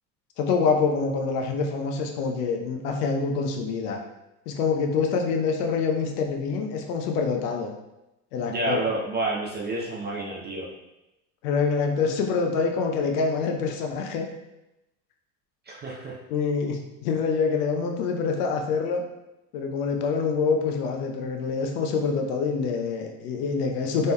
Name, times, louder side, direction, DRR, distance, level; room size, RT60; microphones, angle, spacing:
voice 1, 0.4-4.0 4.5-7.7 8.3-8.8 11.4-14.3 16.3-19.0 19.5-24.1, left 5 dB, 70° left, 3 dB, 0.7 m, -26 dB
voice 2, 8.5-10.7 15.7-16.2, right 2 dB, 20° right, -3 dB, 0.5 m, -29 dB
4.0 x 3.6 x 2.2 m, 0.93 s
hypercardioid pair, 70°, 49 cm